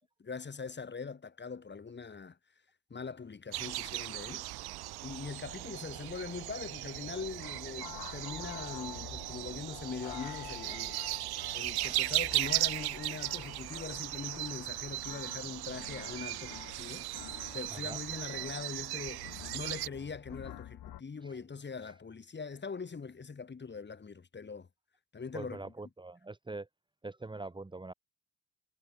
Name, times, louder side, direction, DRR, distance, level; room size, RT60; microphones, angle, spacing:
voice 1, 0.2-2.4 2.9-4.5 5.0-11.0 11.5-19.3 19.5-24.7 25.1-25.7, left 5 dB, 30° left, 5.5 m, -42 dB
sound 1, 3.5-19.9, right 17 dB, 85° right, 0.6 m, -37 dB
sound 2, 7.1-21.0, left 12 dB, 85° left, 3.8 m, -49 dB
voice 2, 25.3-26.7 27.0-27.9, right 3 dB, 15° right, 1.8 m, -43 dB
cardioid pair, 155°, 37 cm